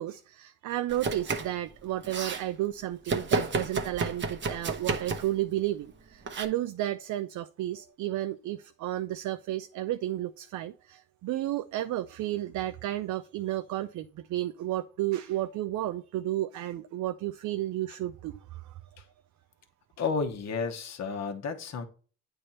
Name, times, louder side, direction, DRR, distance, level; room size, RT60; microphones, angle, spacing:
voice 1, 0.0-18.7, right 14 dB, 70° right, 0.5 m, -32 dB
Domestic sounds home sounds, 0.9-1.6 1.9-2.4 3.1-5.4 6.3-6.5, right 4 dB, 40° right, 0.9 m, -31 dB
voice 2, 20.0-21.9, left 5 dB, 60° left, 1.1 m, -32 dB
8.6 x 3.4 x 4.2 m
cardioid pair, 90°, 30 cm